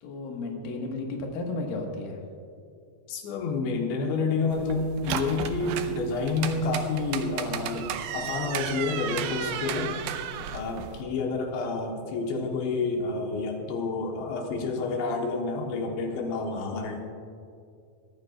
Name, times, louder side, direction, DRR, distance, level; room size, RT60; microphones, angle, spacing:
voice 1, 0.0-2.2, left 2 dB, 60° left, 1 dB, 2.9 m, -33 dB
voice 2, 3.1-10.0 10.5-17.1, left 3 dB, 80° left, 1 dB, 3.3 m, -29 dB
sound 1, 4.5-11.0, right 8 dB, 85° right, 2.1 m, -34 dB
23.0 x 14.0 x 2.4 m, 2.5 s
omnidirectional pair, 5.2 m